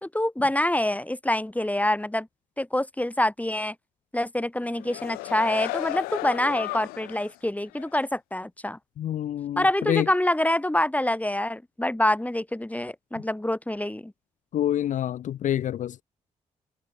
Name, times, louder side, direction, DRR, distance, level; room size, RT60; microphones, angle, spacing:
voice 1, 0.0-2.3 2.6-3.7 4.1-8.8 9.6-14.1, left 1 dB, 10° left, 4.2 m, -26 dB
sound 1, 4.6-7.3 7.8-7.9, left 22 dB, 90° left, 1.6 m, -34 dB
voice 2, 9.0-10.1 14.5-16.0, left 11 dB, 60° left, 0.4 m, -27 dB
hypercardioid pair, 45°, 15 cm